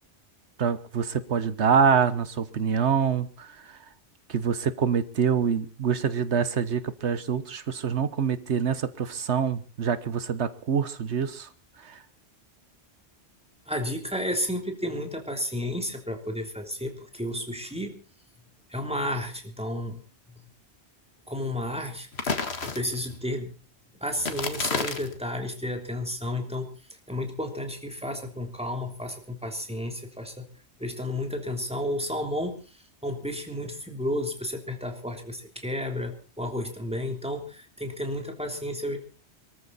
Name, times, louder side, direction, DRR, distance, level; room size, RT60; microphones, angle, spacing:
voice 1, 0.6-3.8 4.3-11.5 11.8-12.0, right 6 dB, 75° right, 14 dB, 1.4 m, -26 dB
voice 2, 13.7-18.0 18.7-20.0 21.3-22.1 22.6-23.5 24.0-26.7 27.1-30.4 30.8-32.6 33.0-39.0, left 1 dB, 5° right, 3 dB, 3.3 m, -32 dB
sound 1, 22.1-23.2 24.2-25.2, left 4 dB, 65° left, 2.1 m, -30 dB
23.5 x 14.0 x 4.2 m, 0.36 s
omnidirectional pair, 1.1 m